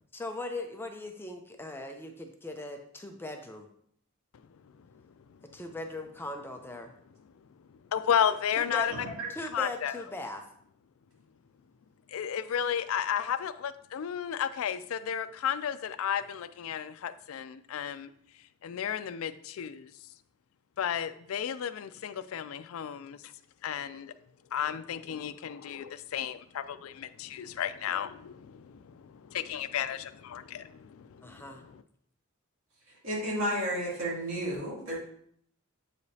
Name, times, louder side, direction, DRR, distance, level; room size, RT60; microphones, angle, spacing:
voice 1, 0.1-3.7 5.5-6.9 8.6-8.9 9.3-10.4 31.2-31.6, left 2 dB, 10° left, 4 dB, 0.5 m, -39 dB
voice 2, 4.5-4.9 5.4-5.5 7.7-8.9 9.4-10.0 12.1-18.1 18.6-19.9 20.8-23.3 23.6-24.1 24.5-31.8, left 8 dB, 85° left, 13 dB, 0.4 m, -33 dB
voice 3, 8.9-9.3 33.0-35.0, equal, 75° right, -6 dB, 2.7 m, -32 dB
7.7 x 4.9 x 2.8 m, 0.66 s
head